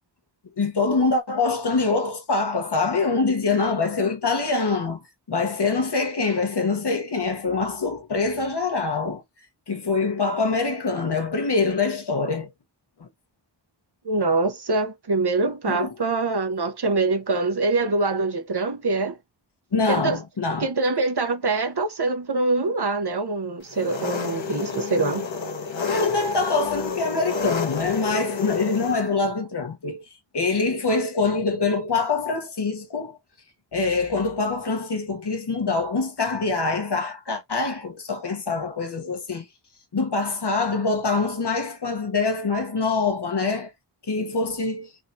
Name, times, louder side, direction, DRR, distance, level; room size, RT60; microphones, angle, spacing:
voice 1, 0.6-9.2 9.7-12.5 13.0-13.1 15.7-15.9 19.7-20.7 25.9-30.1 30.3-33.2 33.7-39.5 39.9-43.7 44.1-44.9, left 4 dB, 65° left, 1.3 m, -24 dB
voice 2, 14.0-19.2 19.9-20.2 20.6-25.2, right 3 dB, 60° right, 1.1 m, -24 dB
Engine, 23.7-29.0, left 5 dB, 85° left, 1.1 m, -29 dB
3.8 x 2.8 x 3.8 m
wide cardioid pair, 65°, 44 cm